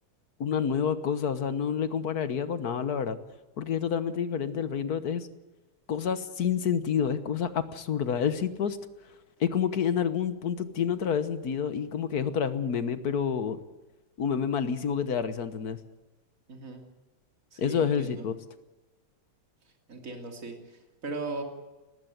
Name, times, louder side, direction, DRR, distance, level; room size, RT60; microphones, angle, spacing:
voice 1, 0.4-3.2 3.6-5.3 5.9-8.8 9.4-13.6 14.2-15.8 17.6-18.3, left 7 dB, 50° left, 11 dB, 1.5 m, -28 dB
voice 2, 16.5-16.8 17.5-18.3 19.9-21.4, right 3 dB, 40° right, 3 dB, 3.3 m, -38 dB
20.0 x 15.0 x 9.2 m, 1.1 s
omnidirectional pair, 2.3 m